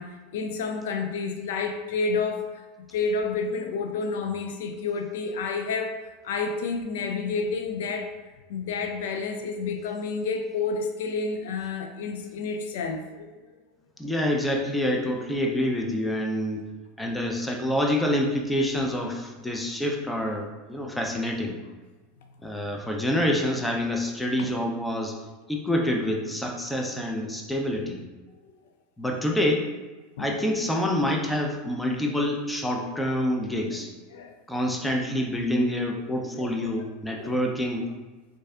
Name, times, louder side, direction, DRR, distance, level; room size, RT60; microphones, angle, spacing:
voice 1, 0.0-2.7 2.9-8.1 8.5-13.3 24.4-24.5 30.2-30.4 33.2-33.3 34.1-34.3 36.4-36.7 37.2-37.4, left 4 dB, 60° left, 4 dB, 0.4 m, -30 dB
voice 2, 14.0-16.6 17.0-21.5 22.4-25.2 25.5-28.0 29.0-29.7 30.2-33.9 34.5-37.8, left 1 dB, 5° left, 1 dB, 0.6 m, -27 dB
6.2 x 2.5 x 2.3 m, 1.3 s
figure-of-eight pair, 80°, 0 cm